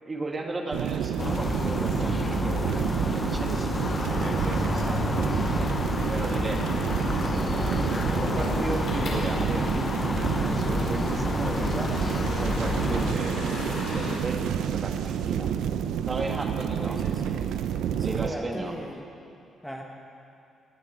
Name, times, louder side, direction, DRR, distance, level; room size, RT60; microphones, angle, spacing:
voice 1, 0.0-5.1 5.8-7.7 8.2-11.9 12.4-13.6 13.9-15.5 16.1-17.0 18.0-18.8, right 2 dB, 30° right, 2 dB, 1.8 m, -35 dB
sound 1, 0.7-18.3, right 9 dB, 80° right, 0.6 m, -29 dB
sound 2, 1.2-13.1, left 3 dB, 25° left, 0.6 m, -30 dB
sound 3, 3.8-14.2, left 2 dB, 60° left, 3.7 m, -36 dB
voice 2, 16.7-17.6 18.0-19.1 19.6-19.8, equal, ahead, 0 dB, 1.3 m, -38 dB
19.0 x 9.9 x 6.2 m, 2.6 s
cardioid pair, 90°, 0 cm